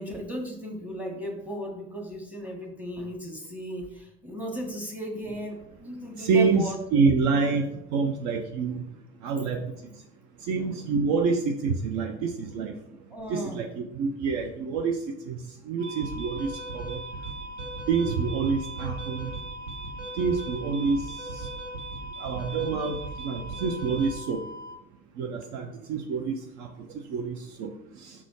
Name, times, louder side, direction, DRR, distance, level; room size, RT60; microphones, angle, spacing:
voice 1, 0.0-6.8 7.3-7.7 10.5-10.8 13.1-13.6, equal, 5° right, 1 dB, 1.8 m, -36 dB
voice 2, 6.2-7.6 7.9-8.8 9.2-9.7 10.5-12.7 13.3-15.0 15.3-15.4 15.7-17.0 17.9-19.3 20.2-21.0 22.2-23.0 23.2-24.4 25.2-26.7 27.1-27.7, right 5 dB, 50° right, 4 dB, 0.7 m, -27 dB
sound 1, 15.8-24.7, right 2 dB, 85° right, 1.3 m, -37 dB
5.8 x 4.1 x 4.6 m, 0.81 s
figure-of-eight pair, 60°, 37 cm